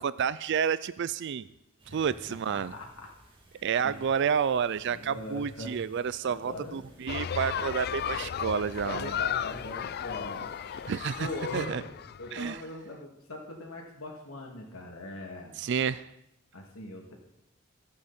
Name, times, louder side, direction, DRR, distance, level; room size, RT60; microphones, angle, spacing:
voice 1, 0.0-1.5 1.9-2.7 3.6-9.1 10.9-11.3 11.5-11.8 12.3-12.5 15.6-16.1, right 7 dB, 55° right, 16 dB, 0.4 m, -30 dB
sound 1, 1.8-11.7, right 1 dB, 25° right, 2.6 m, -59 dB
voice 2, 1.9-3.1 3.8-4.0 4.8-5.8 6.2-6.8 8.8-10.5 11.2-11.9 12.2-15.5 16.5-17.1, left 2 dB, 85° left, 0 dB, 2.5 m, -41 dB
sound 2, 7.1-12.6, left 8 dB, 50° left, 0.4 m, -35 dB
22.5 x 8.5 x 4.3 m, 0.86 s
head